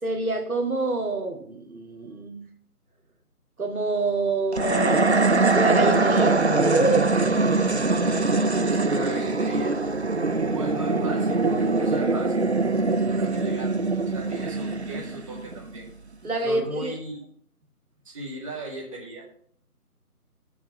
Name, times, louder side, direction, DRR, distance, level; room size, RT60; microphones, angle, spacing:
voice 1, 0.0-2.4 3.6-7.1 16.2-17.0, right 2 dB, 65° right, 3 dB, 2.0 m, -26 dB
sound 1, 4.5-15.9, right 3 dB, 50° right, 0.5 m, -23 dB
voice 2, 8.9-9.8 10.5-12.4 13.1-13.8 14.1-15.9 16.4-17.2 18.1-19.2, right 2 dB, 20° right, -3 dB, 2.0 m, -37 dB
7.5 x 7.4 x 5.8 m, 0.62 s
figure-of-eight pair, 160°, 46 cm